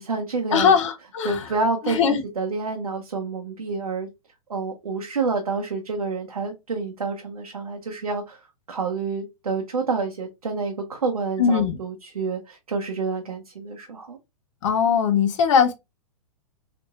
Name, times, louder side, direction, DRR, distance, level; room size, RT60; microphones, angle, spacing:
voice 1, 0.0-0.7 1.2-4.1 4.5-8.4 8.7-14.2, right 4 dB, 85° right, 0.7 m, -28 dB
voice 2, 0.5-1.5 1.8-2.2 11.4-11.8 14.6-15.7, left 7 dB, 60° left, 0.8 m, -20 dB
3.4 x 3.0 x 2.4 m
hypercardioid pair, 115°, 18 cm